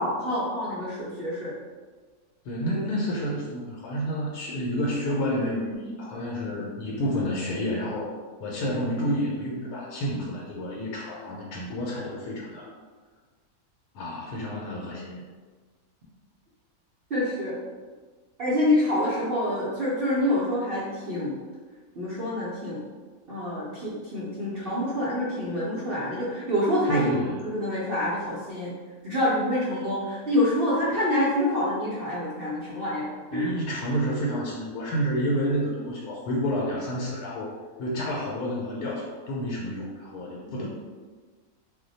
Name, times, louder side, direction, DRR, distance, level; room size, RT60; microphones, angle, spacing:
voice 1, 0.0-1.5 17.1-17.6 18.4-21.3 21.9-22.8 23.3-27.1 27.4-28.7 29.0-33.5 40.4-40.7, left 1 dB, 60° right, -8 dB, 0.6 m, -27 dB
voice 2, 2.4-8.1 8.4-12.7 13.9-15.3 26.9-27.5 33.3-37.5 37.8-40.7, equal, 85° left, -4 dB, 1.2 m, -29 dB
2.6 x 2.1 x 3.9 m, 1.4 s
omnidirectional pair, 1.7 m